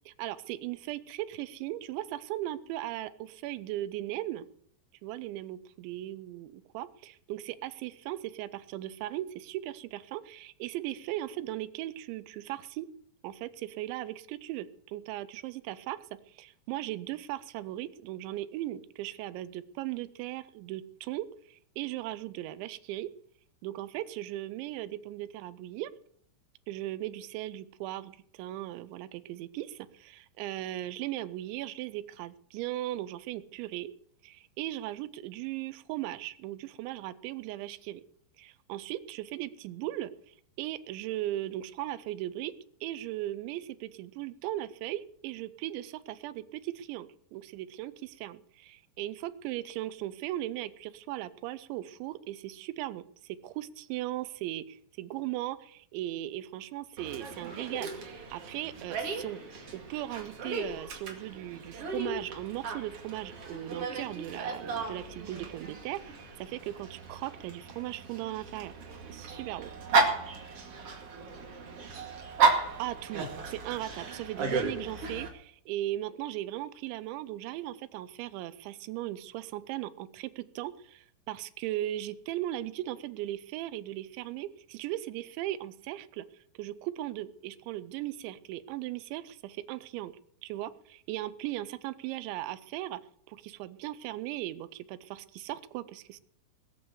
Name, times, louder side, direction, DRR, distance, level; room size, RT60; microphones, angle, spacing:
voice 1, 0.1-4.5 5.0-12.9 13.2-23.1 23.6-25.9 26.7-33.9 34.2-38.0 38.4-42.5 42.8-59.4 59.7-68.8 69.1-69.7 72.8-86.3 86.6-90.1 90.4-93.0 93.3-96.2, right 14 dB, 85° right, 14 dB, 3.1 m, -38 dB
Dog, 57.0-75.3, right 4 dB, 45° right, 2.3 m, -34 dB
19.5 x 8.0 x 6.9 m, 0.66 s
omnidirectional pair, 5.2 m